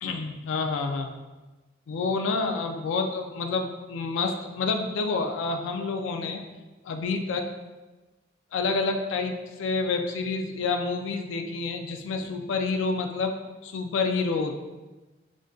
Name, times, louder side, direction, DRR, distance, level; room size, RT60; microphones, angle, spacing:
voice 1, 0.0-1.1 1.9-6.4 6.8-7.5 8.5-13.3 13.6-14.6, left 4 dB, 90° left, 4 dB, 0.3 m, -28 dB
2.5 x 2.2 x 3.6 m, 1.2 s
head